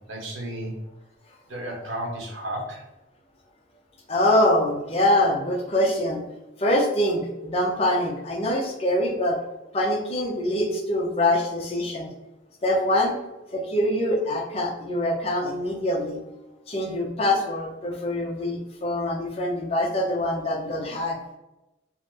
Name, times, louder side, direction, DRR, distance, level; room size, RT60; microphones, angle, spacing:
voice 1, 0.1-0.7 1.5-2.8, right 1 dB, 75° right, 0 dB, 0.9 m, -33 dB
voice 2, 4.1-6.2 6.6-9.4 9.7-12.1 12.6-13.1 13.5-16.2 16.7-21.2, left 1 dB, 30° left, 0 dB, 0.6 m, -24 dB
3.7 x 2.0 x 2.9 m, 0.98 s
head